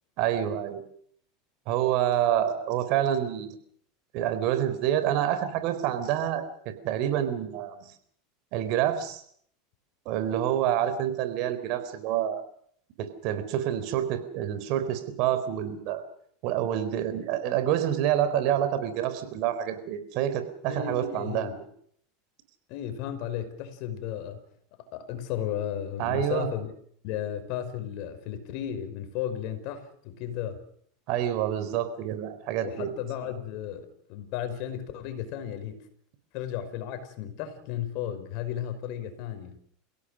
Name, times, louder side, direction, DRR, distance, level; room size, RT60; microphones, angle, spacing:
voice 1, 0.2-0.8 1.7-3.5 4.1-7.9 8.5-9.2 10.1-12.4 13.0-16.0 16.4-21.5 26.0-26.5 31.1-32.9, right 11 dB, 60° right, 3.9 m, -27 dB
voice 2, 20.7-21.5 22.7-24.4 24.9-26.7 27.0-30.6 32.6-35.8 36.3-39.6, left 10 dB, 60° left, 5.0 m, -34 dB
28.5 x 17.0 x 6.4 m
hypercardioid pair, 95°, 0 cm